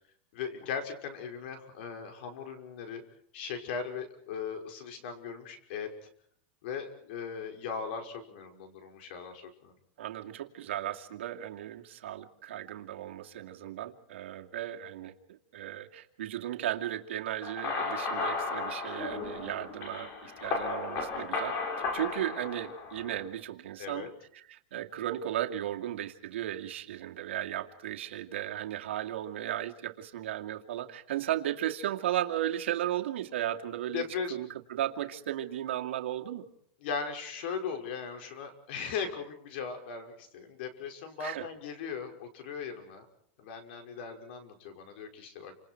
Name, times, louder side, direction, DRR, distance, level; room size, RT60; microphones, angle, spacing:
voice 1, 0.3-3.0 3.3-5.9 6.6-9.7 23.8-24.1 33.9-34.4 36.8-43.1 43.4-45.6, left 6 dB, 65° left, 5 dB, 5.6 m, -38 dB
voice 2, 10.0-15.1 15.5-21.6 21.9-24.1 24.3-34.0 34.3-36.4 41.2-41.5, right 12 dB, 85° right, 5 dB, 2.4 m, -35 dB
sound 1, 17.4-23.2, left 4 dB, 40° left, 4.8 m, -34 dB
29.0 x 27.0 x 4.6 m, 0.67 s
supercardioid pair, 145°, 6 cm